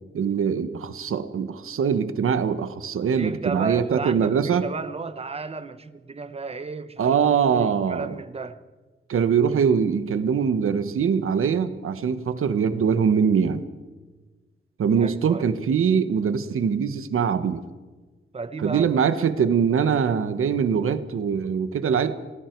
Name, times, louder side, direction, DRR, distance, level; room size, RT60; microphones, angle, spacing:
voice 1, 0.1-4.6 7.0-8.1 9.1-13.6 14.8-17.6 18.6-22.2, right 7 dB, 90° right, 1.3 m, -22 dB
voice 2, 3.1-7.2 7.5-8.6 15.0-15.5 18.3-19.0, right 4 dB, 30° right, 1.0 m, -33 dB
29.5 x 19.0 x 4.7 m
wide cardioid pair, 170°, 21 cm